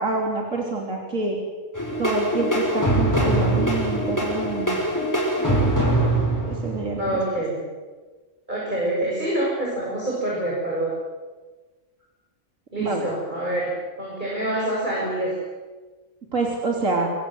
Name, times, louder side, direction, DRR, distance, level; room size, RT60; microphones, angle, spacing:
voice 1, 0.0-1.4 2.0-4.8 5.4-5.6 6.4-7.2 12.8-13.1 16.3-17.1, right 3 dB, 90° right, 0 dB, 3.7 m, -27 dB
sound 1, 1.7-7.2, right 1 dB, 15° left, 5.4 m, -23 dB
voice 2, 7.0-7.6 8.5-10.9 12.7-13.7 14.0-15.3, right 1 dB, 35° right, -5 dB, 7.8 m, -26 dB
26.0 x 23.5 x 7.9 m, 1.3 s
omnidirectional pair, 1.3 m